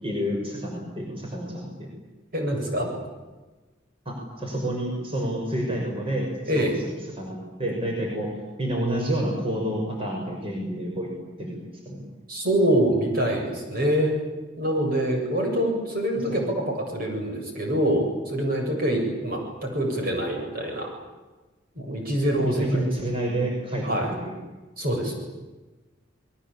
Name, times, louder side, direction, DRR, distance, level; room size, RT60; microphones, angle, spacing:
voice 1, 0.0-1.9 4.0-8.3 8.6-11.1 11.4-12.0 16.3-16.4 22.4-24.3, right 1 dB, 30° right, 0 dB, 6.3 m, -29 dB
voice 2, 2.3-2.9 6.5-6.7 12.3-14.2 14.6-20.9 21.7-22.9 23.8-24.1 24.8-25.1, right 1 dB, 50° right, 1 dB, 8.0 m, -25 dB
29.5 x 22.0 x 8.7 m, 1.2 s
head